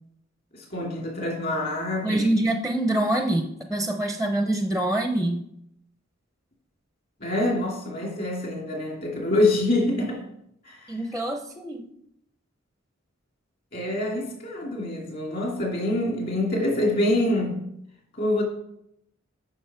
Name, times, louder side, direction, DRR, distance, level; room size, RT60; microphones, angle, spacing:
voice 1, 0.7-2.3 7.2-10.2 10.7-10.8 13.7-17.5 18.2-18.4, left 1 dB, 45° left, 2.6 m, -25 dB
voice 2, 2.0-5.4 10.9-11.8, right 1 dB, ahead, 0.6 m, -25 dB
8.7 x 6.0 x 4.9 m
head